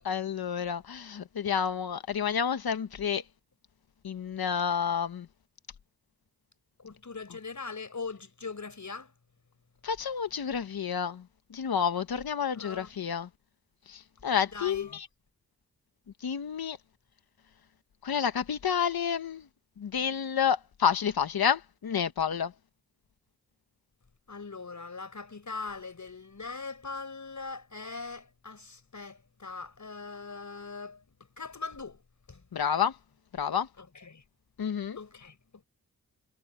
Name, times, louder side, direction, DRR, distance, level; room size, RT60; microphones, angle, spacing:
voice 1, 0.0-3.2 4.0-5.3 9.8-11.2 11.5-13.3 13.9-15.1 16.2-16.8 18.0-19.4 19.8-22.5 32.5-32.9 33.4-33.7 34.6-35.0, left 7 dB, 85° left, 1.4 m, -29 dB
voice 2, 6.8-9.1 12.6-12.9 14.5-14.9 24.3-31.0 31.4-32.0 32.3-32.4 33.8-34.2 35.0-35.3, left 4 dB, 55° left, 5.8 m, -41 dB
cardioid pair, 45°, 36 cm